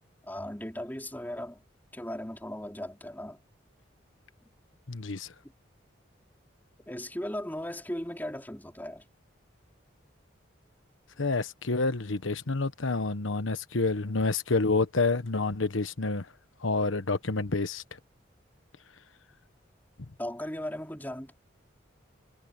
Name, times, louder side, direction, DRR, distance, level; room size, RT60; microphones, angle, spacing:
voice 1, 0.2-1.6 1.9-3.4 6.9-9.0 20.2-21.3, left 1 dB, 10° left, 4.2 m, -37 dB
voice 2, 4.9-5.3 11.2-16.2 16.6-17.8, left 3 dB, 90° left, 1.2 m, -28 dB
head